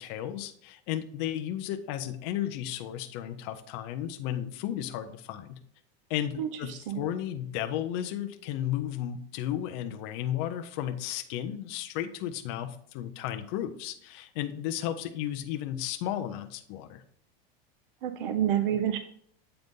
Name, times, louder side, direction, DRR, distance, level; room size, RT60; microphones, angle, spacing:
voice 1, 0.0-5.6 6.1-17.0, left 11 dB, 30° left, 7 dB, 0.4 m, -34 dB
voice 2, 6.4-7.0 18.0-19.0, right 10 dB, 60° right, 9 dB, 0.6 m, -29 dB
7.7 x 3.9 x 3.6 m, 0.62 s
supercardioid pair, 175°, 30 cm